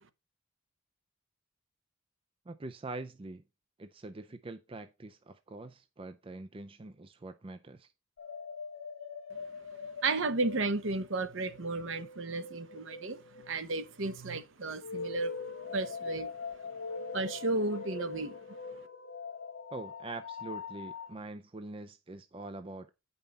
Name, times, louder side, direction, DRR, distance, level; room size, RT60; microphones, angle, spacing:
voice 1, 2.5-3.4 3.8-7.9 19.7-22.9, right 2 dB, 25° right, 0.4 m, -44 dB
sound 1, 8.2-13.9 14.6-21.1, left 5 dB, 80° left, 1.3 m, -43 dB
voice 2, 10.0-15.4 15.6-16.3 17.1-18.4, right 3 dB, 60° right, 0.9 m, -33 dB
9.1 x 5.5 x 4.0 m
head